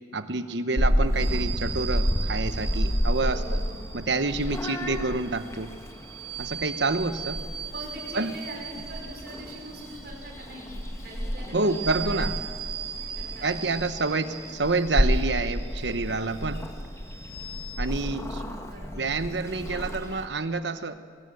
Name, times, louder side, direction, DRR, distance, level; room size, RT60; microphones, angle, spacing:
voice 1, 0.1-3.6 3.9-5.7 6.4-7.4 8.1-8.4 11.5-12.4 13.4-16.6 17.8-18.4 18.9-21.0, right 3 dB, 75° right, 10 dB, 1.1 m, -28 dB
Purr / Meow, 0.8-20.3, equal, 15° left, 1.5 m, -31 dB
sound 1, 1.2-17.8, right 8 dB, 35° right, 2.0 m, -40 dB
voice 2, 3.2-4.0 4.5-4.6 4.9-5.1 7.7-10.8 11.0-12.5 13.2-13.6 14.2-14.5 18.1-19.1, right 1 dB, 60° right, 0 dB, 5.4 m, -43 dB
sound 2, 6.3-14.0, equal, ahead, 3.9 m, -54 dB
23.0 x 16.0 x 7.9 m, 2.1 s
head